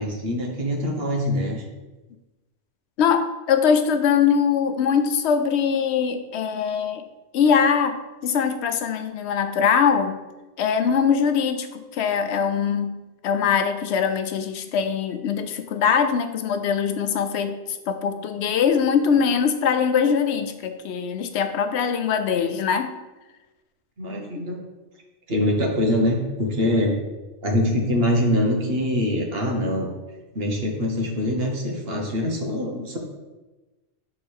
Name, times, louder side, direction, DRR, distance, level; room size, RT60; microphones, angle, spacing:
voice 1, 0.0-1.6 24.0-24.6 25.3-27.0 27.4-29.9 30.3-33.0, left 1 dB, 65° right, 1 dB, 1.3 m, -24 dB
voice 2, 3.0-7.0 7.3-8.0 8.2-10.1 10.6-12.9 13.2-22.9, left 7 dB, 80° left, 8 dB, 0.9 m, -22 dB
6.5 x 3.8 x 4.4 m, 1.1 s
omnidirectional pair, 1.1 m